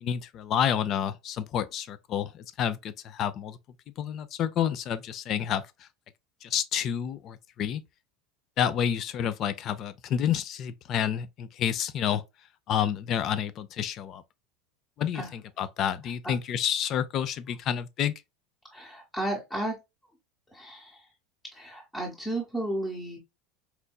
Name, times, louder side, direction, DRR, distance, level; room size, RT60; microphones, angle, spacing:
voice 1, 0.0-3.6 4.0-5.6 6.4-7.8 8.6-12.2 12.7-14.2 15.0-18.2, left 9 dB, 40° left, 0.4 m, -29 dB
voice 2, 18.7-19.8 20.5-21.0 21.5-23.2, right 1 dB, 5° left, 0.9 m, -33 dB
4.4 x 2.6 x 2.2 m
supercardioid pair, 140°, 0 cm